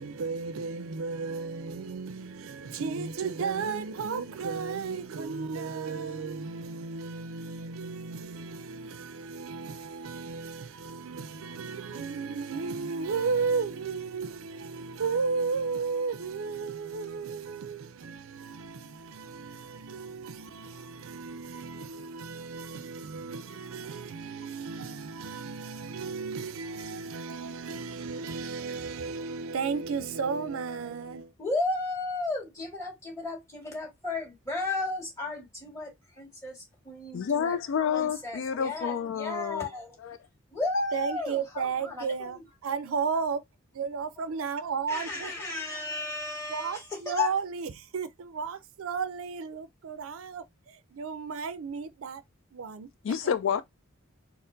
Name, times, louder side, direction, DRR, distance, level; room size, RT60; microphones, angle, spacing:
voice 1, 0.0-31.3 40.9-43.4 43.7-46.0 46.5-52.2 52.5-52.9, right 5 dB, 75° right, 0.4 m, -34 dB
voice 2, 31.4-37.6 37.9-40.0 40.5-42.4 44.9-47.3, left 3 dB, 15° left, 2.0 m, -34 dB
voice 3, 37.1-39.7 40.0-40.2 53.0-53.6, left 7 dB, 60° left, 0.3 m, -29 dB
4.3 x 2.0 x 3.8 m
head